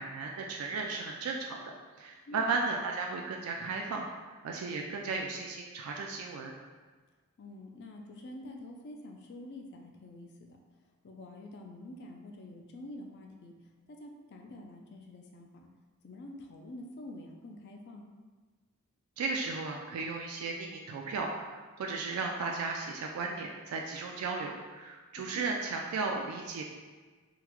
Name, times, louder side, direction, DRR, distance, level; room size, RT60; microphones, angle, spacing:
voice 1, 0.0-6.5 19.2-26.6, right 4 dB, 80° right, 1 dB, 0.3 m, -35 dB
voice 2, 7.4-10.6 11.0-13.5 13.9-15.7 16.0-18.1 25.3-25.5, left 1 dB, 50° left, 2 dB, 0.4 m, -47 dB
3.7 x 2.1 x 3.0 m, 1.4 s
head